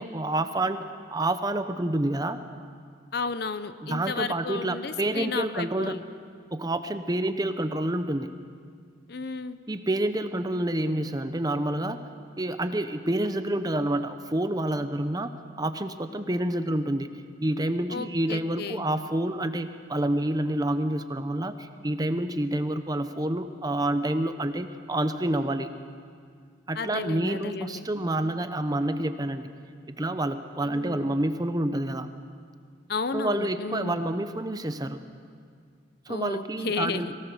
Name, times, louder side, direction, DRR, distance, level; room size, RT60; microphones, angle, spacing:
voice 1, 0.0-2.4 3.8-6.0 6.5-8.3 9.7-12.0 12.4-15.3 15.6-17.1 17.4-25.7 26.7-29.5 29.9-32.1 33.1-35.0 36.1-37.1, right 1 dB, 20° right, 9 dB, 0.7 m, -28 dB
voice 2, 3.1-6.0 9.1-9.6 17.9-18.9 26.8-27.9 30.6-31.2 32.9-34.0 36.1-37.1, left 4 dB, 55° left, 12 dB, 0.7 m, -33 dB
23.0 x 18.0 x 6.8 m, 2.1 s
head